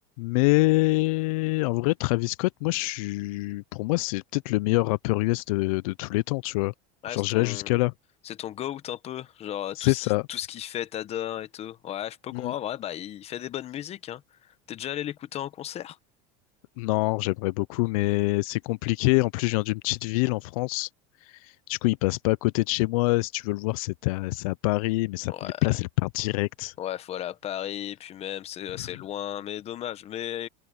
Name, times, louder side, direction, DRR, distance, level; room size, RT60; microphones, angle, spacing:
voice 1, 0.2-6.7 7.1-7.9 9.8-10.2 12.3-12.5 16.8-20.9 21.4-26.7, left 23 dB, 80° left, 0.4 m, -25 dB
voice 2, 7.0-7.8 8.2-16.0 25.3-25.7 26.8-30.5, left 11 dB, 35° left, 1.1 m, -35 dB
open air
supercardioid pair, 130°, 18 cm